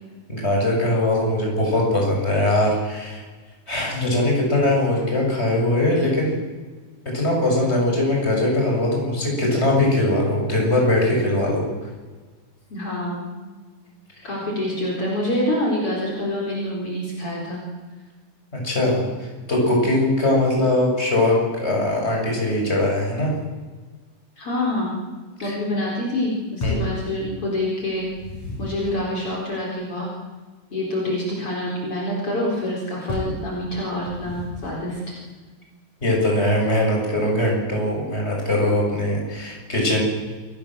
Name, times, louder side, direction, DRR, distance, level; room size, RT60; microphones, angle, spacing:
voice 1, 0.3-3.2 3.7-6.3 7.1-11.7 18.6-23.3 25.4-25.6 26.6-26.9 36.0-40.0, left 1 dB, 20° left, -1 dB, 7.1 m, -21 dB
voice 2, 12.7-13.3 14.2-17.6 24.4-25.0 25.4-28.1 28.6-30.1 30.7-35.0, left 1 dB, 45° left, -3 dB, 5.3 m, -26 dB
sound 1, 26.6-27.0 27.9-29.0 33.1-33.5 34.1-34.8, left 2 dB, 70° left, 6.8 m, -31 dB
28.0 x 17.5 x 7.6 m, 1.4 s
omnidirectional pair, 3.4 m